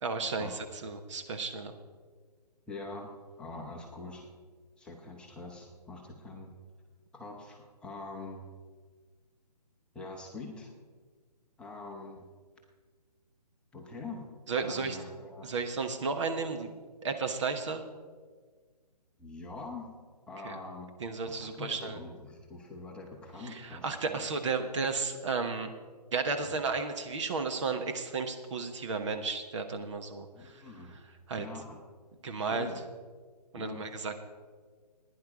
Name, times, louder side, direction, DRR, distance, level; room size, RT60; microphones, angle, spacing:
voice 1, 0.0-1.8 14.5-15.0 15.4-16.7 17.0-17.8 20.4-20.6 21.0-22.0 23.4-25.7 26.1-30.6 31.3-31.5 32.2-32.7 33.5-34.1, right 4 dB, 45° right, 6 dB, 1.2 m, -33 dB
voice 2, 2.7-4.3 4.8-6.5 7.1-8.5 9.9-10.7 11.6-12.3 13.7-15.5 19.2-19.9 20.3-20.9 21.2-24.2 26.4-26.6 30.3-31.0 31.4-31.8 32.4-32.8 33.5-34.0, left 3 dB, 5° left, -2 dB, 1.0 m, -44 dB
15.0 x 10.0 x 5.0 m, 1.5 s
figure-of-eight pair, 150°, 21 cm